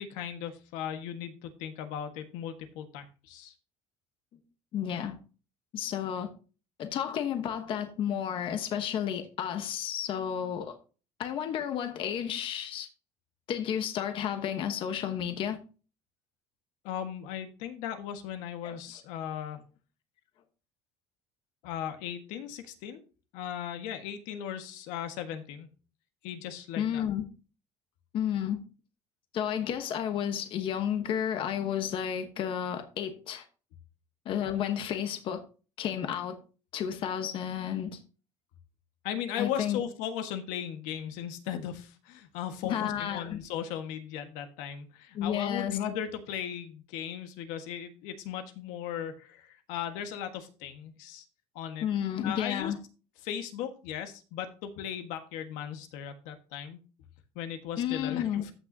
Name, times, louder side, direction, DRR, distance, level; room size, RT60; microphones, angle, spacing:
voice 1, 0.0-3.5 16.8-19.7 21.6-23.0 23.3-25.7 26.2-27.0 39.0-51.2 51.5-51.9 52.2-52.7 53.2-56.8 57.3-58.5, left 9 dB, 80° left, 1.5 m, -37 dB
voice 2, 4.7-5.2 5.7-6.3 6.8-10.7 11.2-12.9 13.5-15.6 18.6-18.7 26.8-27.2 28.1-28.6 29.3-33.4 34.2-35.4 35.8-36.4 36.7-38.0 39.4-39.8 42.6-43.4 45.1-45.8 51.8-52.8 57.8-58.4, left 9 dB, 45° left, 1.1 m, -32 dB
14.0 x 6.1 x 2.8 m
cardioid pair, 160°, 13 cm